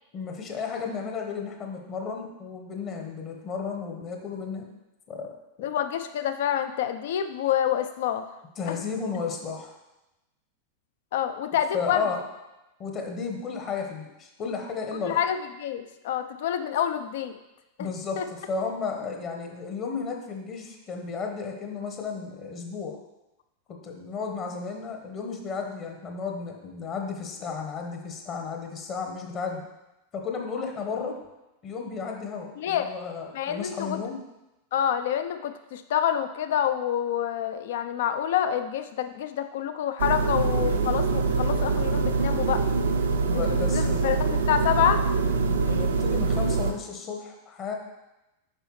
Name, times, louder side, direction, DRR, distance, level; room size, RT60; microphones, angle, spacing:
voice 1, 0.1-4.7 5.1-5.3 8.6-9.7 11.7-12.2 12.8-15.2 17.8-23.0 23.7-29.7 30.1-31.2 31.6-34.2 43.1-44.1 45.5-47.7, left 5 dB, 35° left, 3 dB, 1.1 m, -33 dB
voice 2, 5.6-8.4 8.7-8.8 11.1-12.0 15.0-17.4 17.8-17.9 18.2-18.3 32.6-33.0 33.3-34.0 34.7-42.7 43.5-45.0, left 10 dB, 55° left, 9 dB, 0.5 m, -27 dB
sound 1, 40.0-46.7, right 4 dB, 70° right, 0.6 m, -24 dB
8.1 x 5.5 x 3.1 m, 0.98 s
figure-of-eight pair, 90°, 0 cm